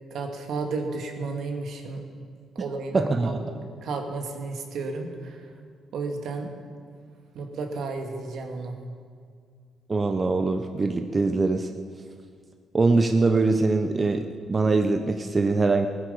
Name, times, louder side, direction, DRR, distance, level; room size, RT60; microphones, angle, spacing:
voice 1, 0.1-2.0 2.6-3.4 3.8-5.5 5.9-6.5 7.3-8.8, right 3 dB, 70° right, 3 dB, 2.0 m, -32 dB
voice 2, 2.9-3.4 9.9-11.7 12.7-15.9, right 3 dB, 30° right, 6 dB, 0.8 m, -23 dB
18.5 x 9.9 x 6.9 m, 2.1 s
cardioid pair, 90°, 0 cm